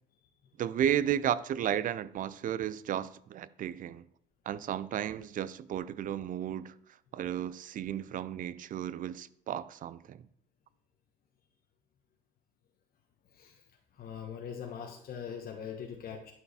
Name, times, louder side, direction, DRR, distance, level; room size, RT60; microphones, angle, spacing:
voice 1, 0.6-4.0 4.5-6.7 7.1-10.3, right 10 dB, 45° right, 0.4 m, -33 dB
voice 2, 13.3-13.6 13.9-16.3, left 7 dB, 50° left, 1.0 m, -42 dB
11.0 x 4.7 x 4.2 m
cardioid pair, 115°, 19 cm